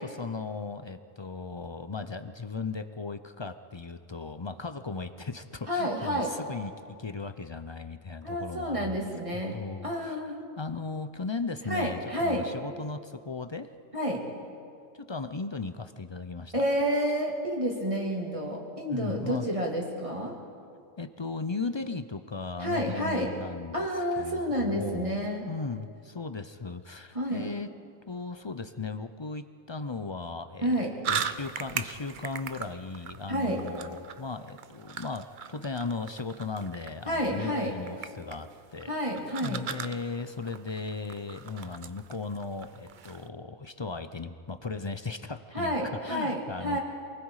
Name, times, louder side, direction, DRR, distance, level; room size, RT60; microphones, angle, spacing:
voice 1, 0.0-9.1 9.5-10.2 10.6-13.7 15.1-16.5 18.9-19.5 21.0-25.2 25.5-27.7 28.1-30.7 31.1-38.9 39.4-46.8, left 4 dB, 45° left, 10 dB, 0.3 m, -37 dB
voice 2, 5.7-6.4 8.2-9.6 9.8-10.4 11.7-12.5 13.9-14.3 16.5-20.4 22.6-23.3 23.7-25.5 27.1-27.5 30.6-30.9 33.3-33.6 37.1-37.7 38.9-39.6 45.5-46.8, equal, 25° right, -1 dB, 2.8 m, -29 dB
sound 1, 31.0-43.3, right 7 dB, 50° right, 0.6 m, -40 dB
28.0 x 20.0 x 4.9 m, 2.3 s
omnidirectional pair, 1.4 m